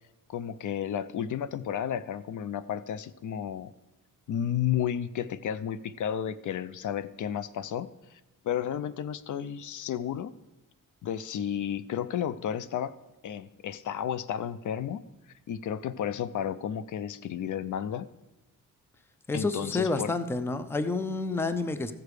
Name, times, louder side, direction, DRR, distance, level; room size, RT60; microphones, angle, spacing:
voice 1, 0.3-3.7 4.3-10.3 11.0-13.0 13.2-15.0 15.5-18.1 19.3-20.1, left 9 dB, 60° left, 15 dB, 0.5 m, -32 dB
voice 2, 19.3-21.9, left 3 dB, 5° left, 11 dB, 0.4 m, -29 dB
14.5 x 6.7 x 4.8 m, 1.1 s
wide cardioid pair, 150°, 34 cm